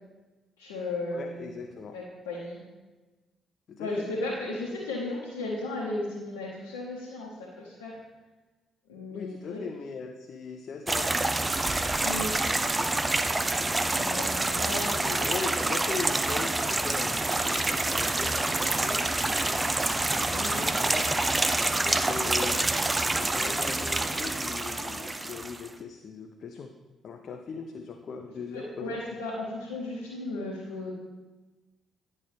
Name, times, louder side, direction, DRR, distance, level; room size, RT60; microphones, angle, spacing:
voice 1, 0.6-1.5 1.9-2.6 3.8-8.0 8.9-9.6 12.0-12.3 13.9-15.0 20.3-20.7 28.5-30.9, left 2 dB, 85° left, -5 dB, 0.9 m, -35 dB
voice 2, 1.1-2.0 3.7-4.1 9.1-11.1 14.8-19.7 20.3-21.2 21.8-22.6 23.1-26.7 27.0-29.0, left 5 dB, 55° left, 4 dB, 0.5 m, -39 dB
sound 1, 10.9-25.7, right 2 dB, 20° right, 0.5 m, -27 dB
sound 2, 11.5-14.9, right 2 dB, 55° right, 2.6 m, -47 dB
10.5 x 5.3 x 3.4 m, 1.2 s
hypercardioid pair, 45°, 0 cm